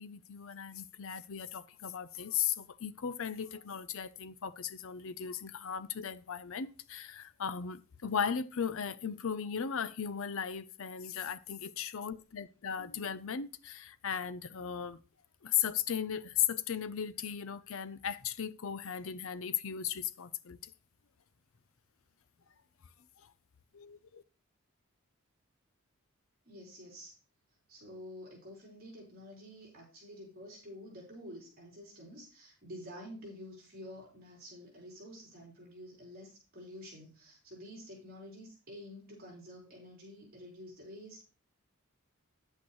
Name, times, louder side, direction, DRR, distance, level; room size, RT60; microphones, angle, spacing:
voice 1, 0.0-15.0 15.4-20.6 23.2-23.3 23.7-24.2, left 8 dB, 65° left, 0.6 m, -36 dB
voice 2, 26.4-27.1 27.7-41.2, equal, 45° right, 4.3 m, -49 dB
10.0 x 8.4 x 3.1 m
head